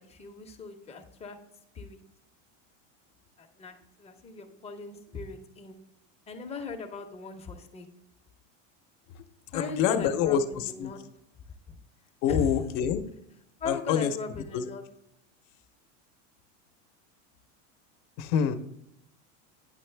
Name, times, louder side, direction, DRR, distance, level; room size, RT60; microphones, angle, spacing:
voice 1, 0.0-1.4 1.7-2.0 3.4-5.8 6.3-7.9 9.5-11.0 11.7-11.8 12.3-12.5 13.6-14.8, left 4 dB, 15° left, 4 dB, 0.7 m, -38 dB
voice 2, 9.5-10.4 10.8-10.9 12.2-13.0 13.7-14.1 14.5-14.7 18.2-18.6, left 8 dB, 50° left, 10 dB, 0.8 m, -26 dB
9.8 x 6.0 x 3.3 m, 0.82 s
supercardioid pair, 155°, 39 cm